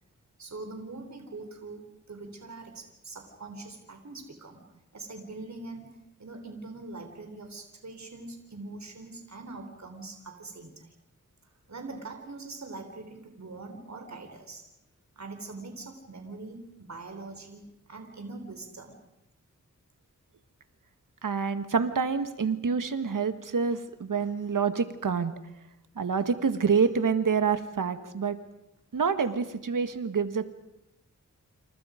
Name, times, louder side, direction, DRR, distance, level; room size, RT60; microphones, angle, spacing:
voice 1, 0.4-4.6 4.9-10.9 11.7-14.6 15.2-19.0, right 3 dB, 60° right, 5 dB, 4.0 m, -43 dB
voice 2, 21.2-25.3 26.0-28.4 28.9-30.5, right 5 dB, 85° right, 10 dB, 1.8 m, -27 dB
28.5 x 28.5 x 5.2 m, 0.88 s
wide cardioid pair, 70°, 31 cm